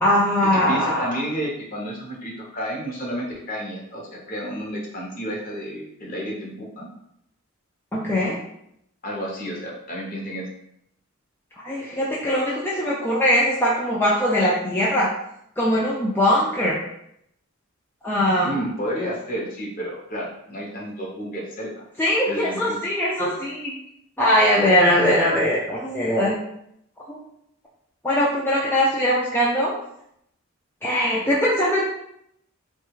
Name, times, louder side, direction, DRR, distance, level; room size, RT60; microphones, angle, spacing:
voice 1, 0.0-1.2 7.9-8.4 11.6-15.1 15.6-16.8 18.0-18.5 22.0-23.7 24.2-26.4 27.1-27.2 28.0-29.7 30.8-31.8, equal, 10° left, -6 dB, 0.3 m, -21 dB
voice 2, 0.5-6.9 9.0-10.5 18.4-21.8 22.3-22.6, equal, 40° left, -3 dB, 0.8 m, -31 dB
3.1 x 2.3 x 3.1 m, 0.76 s
head